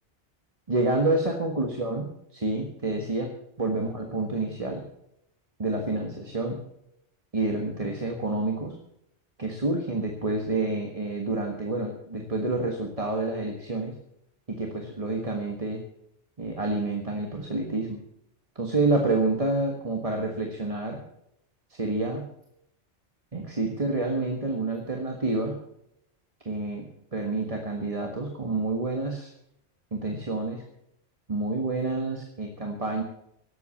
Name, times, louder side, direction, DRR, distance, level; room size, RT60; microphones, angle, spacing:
voice 1, 0.7-3.3 3.6-4.8 5.6-6.6 7.3-8.7 9.4-13.9 14.5-15.8 16.4-18.0 18.5-21.0 21.7-22.2 23.3-25.5 26.4-26.9 27.1-29.3 29.9-30.6 31.3-33.0, right 2 dB, 30° right, 2 dB, 1.6 m, -28 dB
18.0 x 8.3 x 7.2 m, 0.79 s
omnidirectional pair, 1.2 m